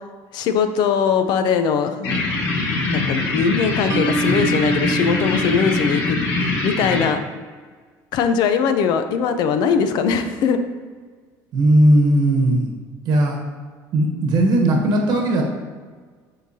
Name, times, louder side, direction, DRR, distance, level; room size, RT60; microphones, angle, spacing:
voice 1, 0.3-2.2 2.8-6.2 6.6-7.2 8.1-10.6, left 6 dB, 65° left, 8 dB, 0.5 m, -20 dB
sound 1, 2.0-7.0, left 3 dB, 85° left, 1.3 m, -23 dB
Mallet percussion, 3.9-7.2, right 4 dB, 35° right, 1.0 m, -28 dB
voice 2, 11.5-12.7 13.0-13.4 13.9-15.4, right 1 dB, 60° right, 0 dB, 1.2 m, -17 dB
11.0 x 3.9 x 2.8 m, 1.5 s
cardioid pair, 120°, 8 cm